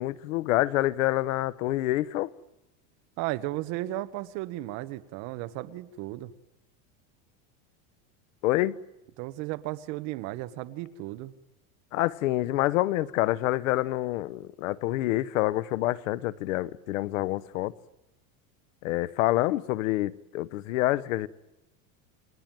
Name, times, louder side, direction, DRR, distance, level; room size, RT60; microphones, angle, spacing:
voice 1, 0.0-2.3 8.4-8.8 11.9-17.7 18.8-21.3, left 16 dB, 90° left, 1.0 m, -27 dB
voice 2, 3.2-6.3 9.2-11.3, right 16 dB, 45° right, 1.4 m, -34 dB
29.5 x 22.0 x 9.1 m
supercardioid pair, 170°, 39 cm